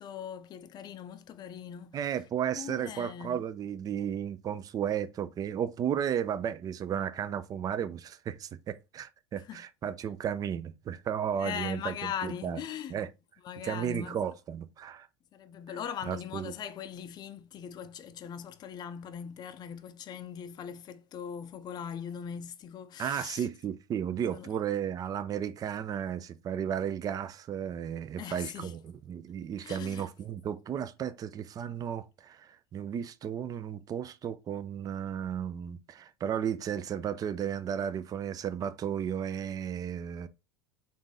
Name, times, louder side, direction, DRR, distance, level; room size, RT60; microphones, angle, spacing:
voice 1, 0.0-2.2 2.5-3.4 9.4-9.6 11.4-13.0 13.4-14.3 15.3-23.5 24.2-24.5 28.2-28.7 29.6-30.1, left 8 dB, 35° left, 0.5 m, -40 dB
voice 2, 1.9-12.6 12.9-13.1 13.6-15.1 16.1-16.5 23.0-40.3, right 9 dB, 30° right, 0.4 m, -34 dB
3.5 x 2.7 x 3.9 m
supercardioid pair, 115°, 13 cm